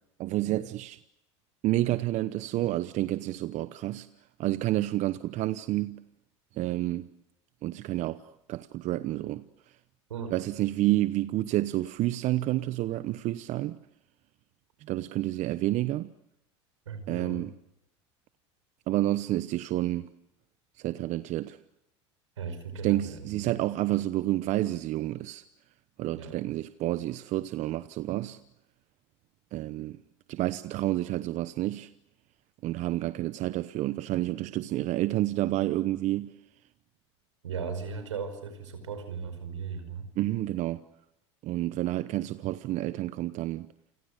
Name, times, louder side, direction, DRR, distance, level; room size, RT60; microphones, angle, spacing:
voice 1, 0.2-1.0 1.6-4.1 4.4-6.0 6.5-7.1 7.6-9.4 10.3-13.8 14.8-16.1 17.1-17.5 18.9-20.1 20.8-21.6 22.8-25.4 26.0-28.4 29.5-30.0 30.3-31.9 32.6-36.3 40.2-40.8 41.4-43.7, right 15 dB, 50° right, 0.9 m, -29 dB
voice 2, 16.8-17.5 22.4-23.5 26.1-26.4 37.4-40.1, right 5 dB, 90° right, 5.1 m, -37 dB
29.0 x 25.0 x 6.6 m
hypercardioid pair, 85°, 15 cm